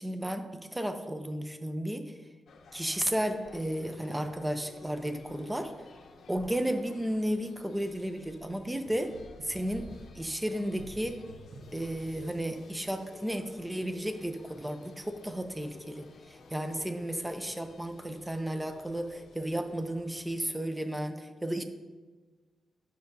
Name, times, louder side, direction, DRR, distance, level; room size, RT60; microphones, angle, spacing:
voice 1, 0.0-2.2 2.7-5.7 6.3-9.1 9.4-9.9 10.1-11.2 11.7-21.6, right 1 dB, 10° right, 7 dB, 0.6 m, -33 dB
sound 1, 2.5-20.8, left 4 dB, 70° left, 0.7 m, -53 dB
sound 2, 8.1-12.4, right 1 dB, 80° right, 0.8 m, -51 dB
9.4 x 6.4 x 2.6 m, 1.3 s
cardioid pair, 120°, 0 cm